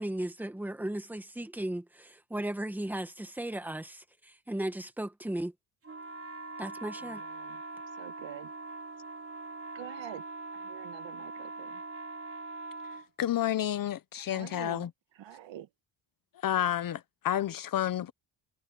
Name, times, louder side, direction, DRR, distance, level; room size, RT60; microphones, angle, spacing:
voice 1, 0.0-5.5 6.6-7.2, right 1 dB, 5° right, 1.4 m, -36 dB
sound 1, 5.8-13.1, right 3 dB, 30° right, 3.5 m, -42 dB
voice 2, 7.0-7.6 7.9-8.5 9.7-10.2 10.5-11.8 14.1-14.9 15.1-15.7, right 12 dB, 65° right, 1.7 m, -46 dB
voice 3, 12.9-14.9 16.3-18.1, left 11 dB, 45° left, 0.8 m, -30 dB
cardioid pair, 155°, 47 cm